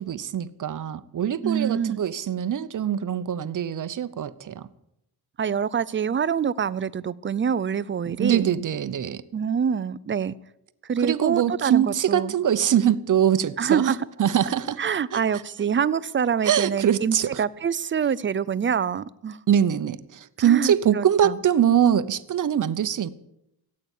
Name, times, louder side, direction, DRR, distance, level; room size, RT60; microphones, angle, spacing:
voice 1, 0.0-4.7 8.1-9.2 11.0-14.8 15.1-15.4 16.4-17.4 19.5-23.1, right 9 dB, 55° right, 0.8 m, -23 dB
voice 2, 1.4-2.0 5.4-8.5 9.3-10.4 10.9-12.3 13.6-14.0 14.8-19.4 20.4-21.4, right 7 dB, 30° right, 0.5 m, -25 dB
16.5 x 8.6 x 8.3 m
cardioid pair, 110°, 38 cm